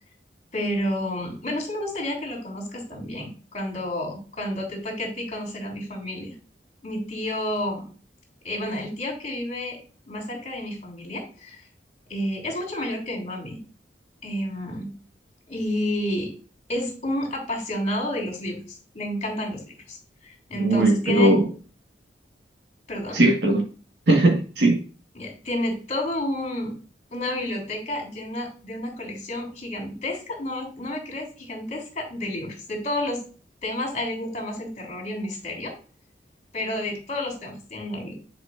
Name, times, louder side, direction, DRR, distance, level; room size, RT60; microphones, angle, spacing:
voice 1, 0.5-6.3 6.8-7.8 8.4-9.8 10.1-11.6 12.1-13.6 14.2-14.9 15.5-16.3 16.7-20.0 20.2-21.3 22.9-23.2 25.1-26.7 27.1-33.2 33.6-35.7 36.5-38.1, left 1 dB, 40° left, 0 dB, 3.3 m, -30 dB
voice 2, 20.6-21.4 23.1-23.6 24.1-24.8, right 1 dB, 70° right, 1 dB, 1.7 m, -19 dB
10.0 x 5.1 x 2.6 m, 0.37 s
head